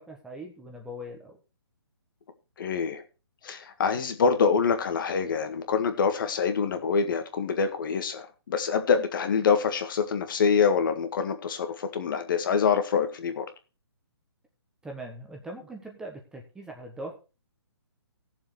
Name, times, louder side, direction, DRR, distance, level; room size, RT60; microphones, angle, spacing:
voice 1, 0.0-1.4 14.8-17.2, right 1 dB, 5° right, 2 dB, 1.3 m, -41 dB
voice 2, 2.6-3.0 3.4-13.5, left 6 dB, 50° left, 8 dB, 1.8 m, -25 dB
17.5 x 7.2 x 3.3 m, 0.31 s
hypercardioid pair, 150°, 14 cm